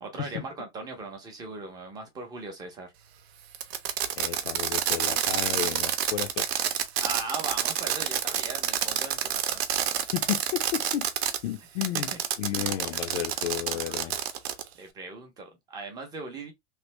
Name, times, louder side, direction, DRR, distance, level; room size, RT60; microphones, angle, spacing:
voice 1, 0.0-2.9 7.0-9.6 12.1-12.2 12.5-13.0 13.4-14.1 14.8-16.5, right 3 dB, 10° right, 0.5 m, -39 dB
Fireworks, 3.5-11.4 11.8-14.7, right 10 dB, 65° right, 0.7 m, -28 dB
voice 2, 4.2-6.5 10.1-11.1 11.4-14.2, left 12 dB, 70° left, 0.6 m, -32 dB
3.1 x 2.5 x 3.0 m
supercardioid pair, 170°, 34 cm